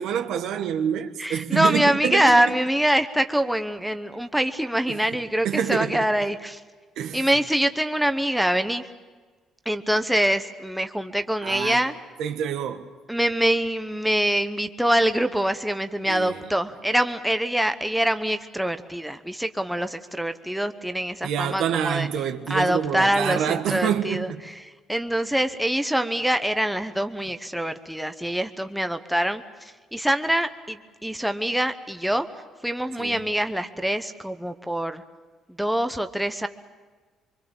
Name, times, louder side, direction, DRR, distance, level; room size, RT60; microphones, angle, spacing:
voice 1, 0.0-2.6 4.9-5.0 5.4-6.1 7.0-7.3 11.4-11.8 12.2-12.9 16.0-16.5 21.2-24.4 33.0-33.3, right 8 dB, 75° right, 1.5 m, -27 dB
voice 2, 1.2-6.6 7.1-8.8 9.7-11.9 13.1-22.1 22.5-24.3 24.9-32.3 32.6-35.0 35.6-36.5, right 1 dB, ahead, 0.9 m, -24 dB
24.5 x 24.0 x 7.2 m
cardioid pair, 130°, 0 cm